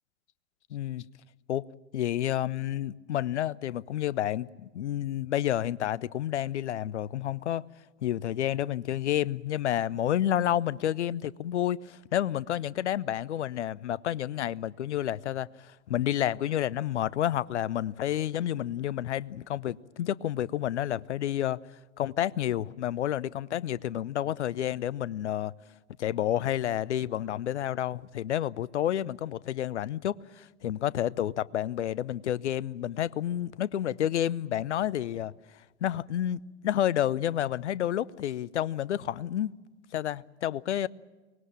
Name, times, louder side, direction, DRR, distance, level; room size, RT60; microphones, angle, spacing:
voice 1, 0.7-1.1 1.5-1.7 1.9-7.7 8.0-21.6 22.0-25.5 26.0-39.5 39.9-40.9, left 11 dB, 75° left, 0.7 m, -30 dB
24.0 x 20.0 x 8.8 m
hypercardioid pair, 95°, 35 cm